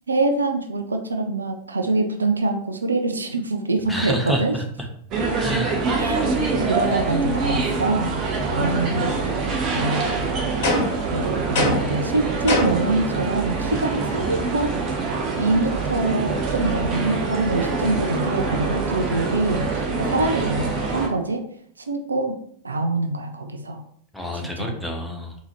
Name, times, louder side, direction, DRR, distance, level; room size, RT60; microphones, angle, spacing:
voice 1, 0.1-4.6 6.0-8.2 8.5-9.2 9.7-10.2 11.0-14.7 15.4-21.4 21.8-22.4 22.6-23.8 24.6-24.7, right 2 dB, 75° right, 6 dB, 0.4 m, -25 dB
voice 2, 3.9-4.9 5.4-6.1 24.1-25.4, equal, 5° left, 1 dB, 0.7 m, -28 dB
sound 1, 5.1-21.1, right 4 dB, 35° right, 0.8 m, -25 dB
sound 2, 10.6-11.1 11.5-12.0 12.5-12.9, left 1 dB, 50° left, 1.1 m, -22 dB
4.0 x 2.7 x 2.9 m, 0.65 s
figure-of-eight pair, 90°, 0 cm